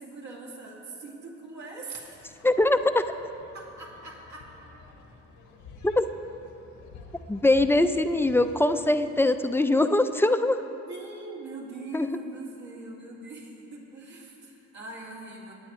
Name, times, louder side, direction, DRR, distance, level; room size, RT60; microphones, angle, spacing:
voice 1, 0.0-2.3 3.5-4.5 9.0-9.3 10.9-15.5, right 2 dB, 70° right, -3 dB, 2.3 m, -42 dB
sound 1, 2.1-9.1, left 3 dB, 90° left, 1.3 m, -50 dB
voice 2, 2.4-3.0 5.8-6.1 7.3-10.6 11.9-12.1, left 2 dB, 10° left, 9 dB, 0.4 m, -22 dB
17.0 x 9.3 x 3.1 m, 2.9 s
cardioid pair, 90°, 30 cm